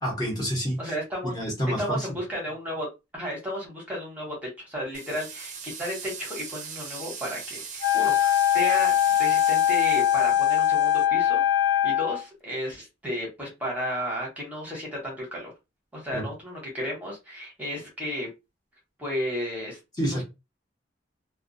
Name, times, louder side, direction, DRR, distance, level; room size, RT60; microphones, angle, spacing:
voice 1, 0.0-0.9 1.2-2.1 16.1-16.2 20.0-20.2, equal, 20° left, 0.9 m, -28 dB
voice 2, 0.8-1.3 1.8-2.9 3.1-15.5 15.9-18.3 19.0-19.8 20.0-20.2, equal, 10° right, 0.9 m, -33 dB
sound 1, 4.9-11.1, right 5 dB, 40° right, 0.5 m, -39 dB
Wind instrument woodwind instrument, 7.8-12.2, left 11 dB, 85° left, 0.4 m, -22 dB
2.2 x 2.2 x 2.5 m
head